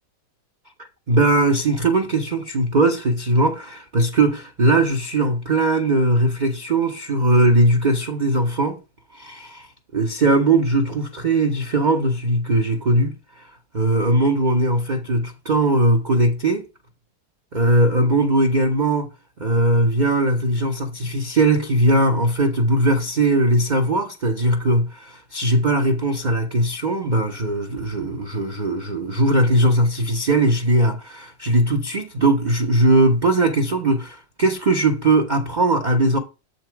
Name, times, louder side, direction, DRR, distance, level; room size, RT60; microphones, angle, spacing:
voice 1, 1.1-8.8 9.1-9.7 9.9-16.6 17.5-19.1 19.4-36.2, right 1 dB, 60° right, 0.4 m, -19 dB
7.6 x 3.9 x 4.5 m
omnidirectional pair, 1.9 m